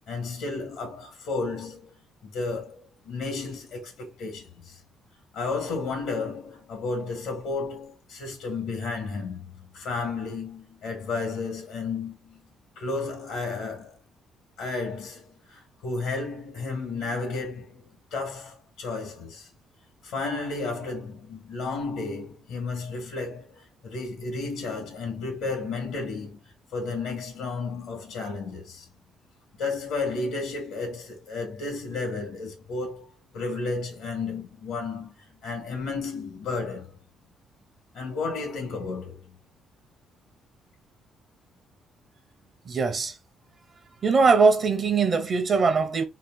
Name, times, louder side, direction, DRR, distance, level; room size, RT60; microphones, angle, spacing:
voice 1, 0.1-1.9 2.2-4.8 5.3-9.5 9.7-12.5 12.8-14.0 14.6-19.5 20.0-26.4 26.7-28.9 29.6-33.1 33.3-36.9 37.9-39.4, left 3 dB, 85° left, 2.0 m, -33 dB
voice 2, 42.7-43.1 44.0-46.0, right 4 dB, 40° right, 0.7 m, -21 dB
3.7 x 2.6 x 3.8 m
cardioid pair, 120°, 0 cm